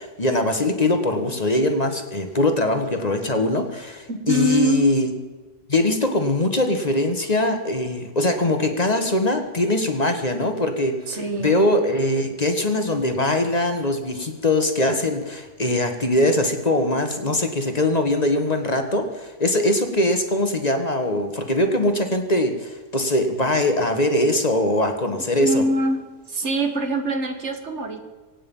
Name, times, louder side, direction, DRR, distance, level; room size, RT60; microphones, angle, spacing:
voice 1, 0.0-5.1 5.7-11.0 11.4-25.6, left 1 dB, 35° left, 6 dB, 1.4 m, -22 dB
voice 2, 4.1-4.9 11.1-11.6 25.4-26.0 26.3-28.0, right 1 dB, 65° right, 6 dB, 1.9 m, -24 dB
24.0 x 9.0 x 5.4 m, 1.3 s
omnidirectional pair, 1.3 m